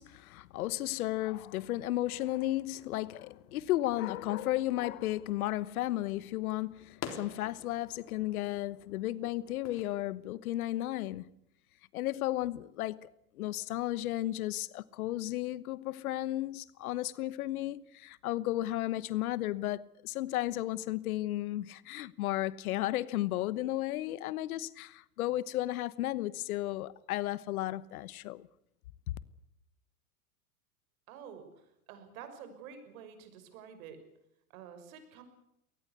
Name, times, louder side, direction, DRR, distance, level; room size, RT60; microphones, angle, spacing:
voice 1, 0.0-11.3 11.9-13.1 13.4-28.5, left 15 dB, 70° left, 1.1 m, -34 dB
sound 1, 2.7-9.9, left 7 dB, 35° left, 3.7 m, -50 dB
voice 2, 31.1-34.0 34.5-35.2, right 7 dB, 65° right, 6.1 m, -49 dB
22.5 x 19.0 x 8.2 m
hypercardioid pair, 115°, 45 cm